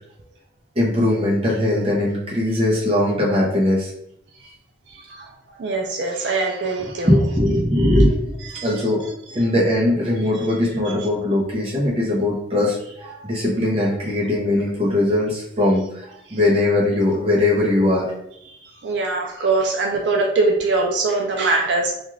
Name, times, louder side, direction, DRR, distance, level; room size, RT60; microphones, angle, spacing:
voice 1, 0.8-3.9 7.0-9.0 9.3-18.1, left 1 dB, 30° right, -5 dB, 0.7 m, -20 dB
voice 2, 4.9-7.1 8.5-9.1 16.3-16.4 18.5-21.9, right 3 dB, 70° right, 1 dB, 0.4 m, -23 dB
2.4 x 2.3 x 3.1 m, 0.75 s
head